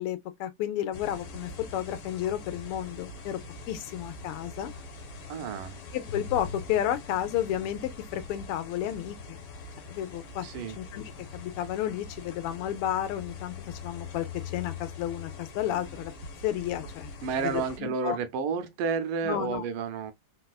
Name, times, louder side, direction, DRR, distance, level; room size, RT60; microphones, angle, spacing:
voice 1, 0.0-3.4 3.7-4.7 5.9-9.4 9.9-10.4 10.8-11.0 11.3-14.3 14.5-16.1 16.4-17.1 17.4-18.2 19.2-19.6, left 11 dB, 85° left, 1.5 m, -32 dB
sound 1, 0.9-17.8, left 4 dB, 70° left, 1.6 m, -43 dB
voice 2, 5.3-5.8 10.4-10.8 17.2-20.1, right 6 dB, 80° right, 1.5 m, -31 dB
4.0 x 2.4 x 2.3 m
omnidirectional pair, 2.4 m